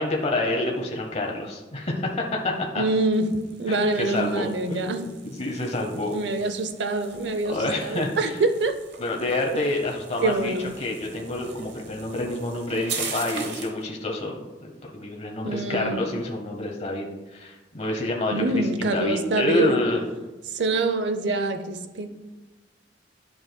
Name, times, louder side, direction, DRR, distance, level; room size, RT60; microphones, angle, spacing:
voice 1, 0.0-2.8 3.7-6.2 7.4-8.4 9.0-20.0, left 2 dB, 40° left, 1 dB, 0.9 m, -28 dB
voice 2, 2.8-3.3 3.6-5.0 6.1-8.8 10.2-10.7 15.4-16.1 18.3-19.8 20.5-22.1, right 2 dB, 85° right, 8 dB, 0.6 m, -25 dB
sound 1, 3.1-13.8, right 5 dB, 70° right, 1.0 m, -40 dB
11.0 x 6.2 x 2.2 m, 1.1 s
head